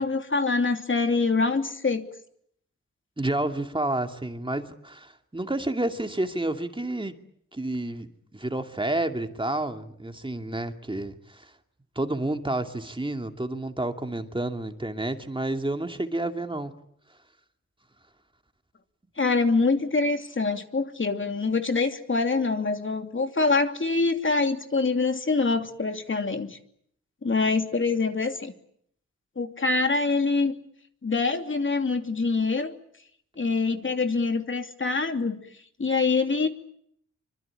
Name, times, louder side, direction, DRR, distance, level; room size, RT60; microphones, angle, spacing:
voice 1, 0.0-2.1 19.2-26.6 27.2-28.5 29.4-30.6 31.0-32.7 33.4-35.4 35.8-36.5, left 3 dB, 40° left, 6 dB, 2.8 m, -25 dB
voice 2, 3.2-7.1 7.5-11.5 12.0-16.7, right 2 dB, 15° right, 6 dB, 2.5 m, -30 dB
25.5 x 25.5 x 8.8 m, 0.68 s
wide cardioid pair, 85°, 29 cm